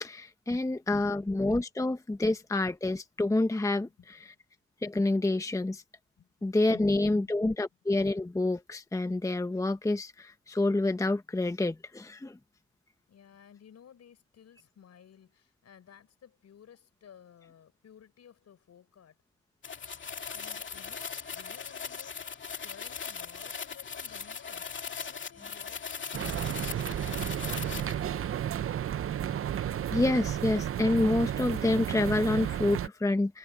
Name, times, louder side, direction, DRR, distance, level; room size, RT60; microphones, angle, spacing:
voice 1, 0.0-4.2 4.8-5.8 6.4-12.4 29.9-33.4, left 2 dB, 10° left, 1.0 m, -28 dB
voice 2, 0.6-1.4 3.8-3.9 6.2-7.4 8.2-8.3 13.1-19.1 20.3-22.4 22.6-24.7 25.1-28.4, left 8 dB, 60° left, 7.0 m, -55 dB
sound 1, 19.6-28.0, left 6 dB, 40° left, 2.3 m, -39 dB
sound 2, 26.1-32.9, right 10 dB, 45° right, 0.7 m, -32 dB
cardioid pair, 90°, 30 cm